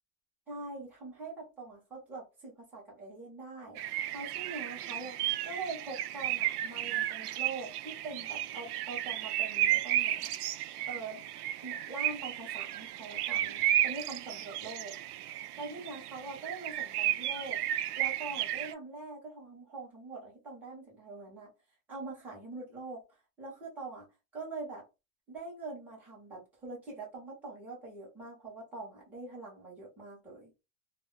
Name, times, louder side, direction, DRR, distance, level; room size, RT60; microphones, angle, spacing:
voice 1, 0.5-3.8 4.1-10.3 10.9-11.2 11.6-14.9 15.6-17.6 18.0-21.5 21.9-23.0 23.4-24.1 24.3-24.9 25.3-30.5, right 3 dB, 5° right, 0.5 m, -43 dB
sound 1, 3.8-18.7, right 13 dB, 80° right, 0.5 m, -33 dB
2.1 x 2.1 x 3.6 m
supercardioid pair, 170°, 45 cm